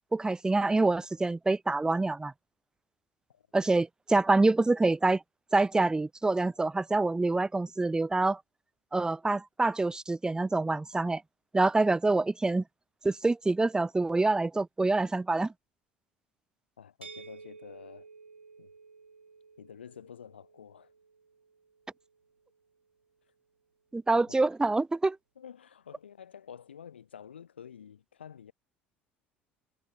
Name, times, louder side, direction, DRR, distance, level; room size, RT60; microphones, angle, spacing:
voice 1, 0.1-2.3 3.5-5.2 5.5-8.4 8.9-11.2 11.5-12.6 13.0-15.5 23.9-25.2, right 3 dB, 10° right, 0.7 m, -26 dB
voice 2, 16.8-18.1 18.6-18.7 19.6-20.9 24.3-24.4 25.4-28.5, left 8 dB, 80° left, 4.9 m, -49 dB
sound 1, 17.0-22.8, right 5 dB, 85° right, 5.5 m, -53 dB
figure-of-eight pair, 60°, 6 cm